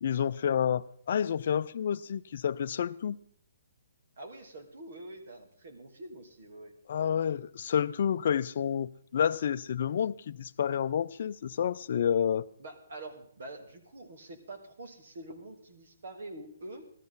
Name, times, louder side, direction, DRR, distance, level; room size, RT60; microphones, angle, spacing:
voice 1, 0.0-3.2 6.9-12.5, left 8 dB, 55° left, 0.4 m, -29 dB
voice 2, 4.2-6.7 12.6-16.8, right 2 dB, 65° right, 2.6 m, -46 dB
15.0 x 12.5 x 4.0 m
hypercardioid pair, 155°, 0 cm